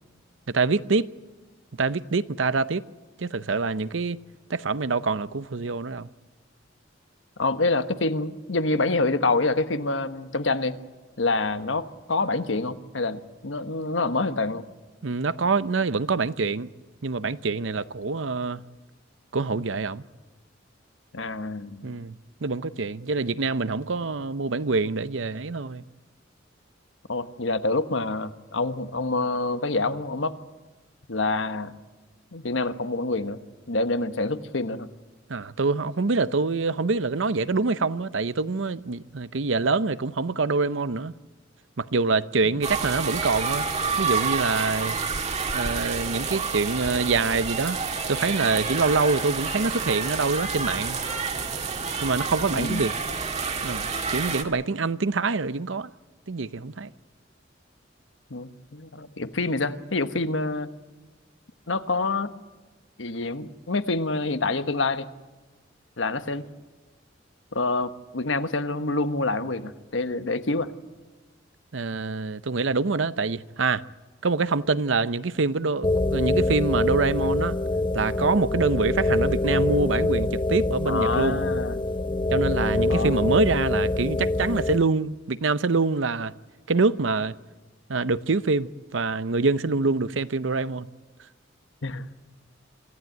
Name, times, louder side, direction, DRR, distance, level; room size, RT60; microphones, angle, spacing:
voice 1, 0.5-1.1 1.8-2.8 3.2-4.2 4.5-6.1 15.0-16.7 17.0-18.6 19.3-20.0 21.8-25.8 35.3-41.1 41.8-43.7 44.0-45.0 45.5-47.8 48.1-51.0 52.0-52.9 53.6-55.9 56.3-56.9 71.7-73.8 74.2-77.6 77.9-81.4 82.3-86.3 86.7-87.3 87.9-90.9, right 4 dB, 75° right, 0.8 m, -25 dB
voice 2, 7.4-10.8 11.2-14.6 21.1-22.0 27.1-30.3 31.1-31.7 32.3-33.4 33.7-34.9 52.5-52.8 58.3-60.7 61.7-62.3 63.0-65.1 66.0-66.4 67.5-70.7 80.8-81.8 82.9-83.2 91.8-92.0, left 3 dB, 75° left, 1.2 m, -27 dB
sound 1, 42.6-54.4, right 5 dB, 35° right, 2.0 m, -29 dB
sound 2, 75.8-84.8, left 2 dB, 25° left, 0.6 m, -25 dB
25.5 x 15.0 x 9.2 m
head